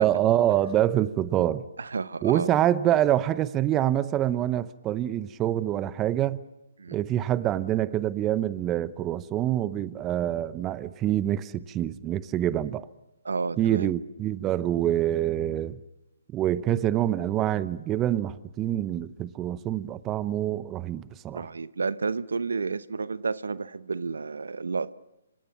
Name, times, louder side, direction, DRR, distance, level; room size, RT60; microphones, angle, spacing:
voice 1, 0.0-1.6 2.2-6.4 6.9-12.9 13.6-15.8 16.3-21.4, right 12 dB, 20° right, 0.8 m, -26 dB
voice 2, 1.8-2.5 6.8-7.0 13.2-13.9 21.3-24.9, right 4 dB, 80° right, 0.8 m, -31 dB
26.0 x 26.0 x 5.9 m
hypercardioid pair, 140°, 0 cm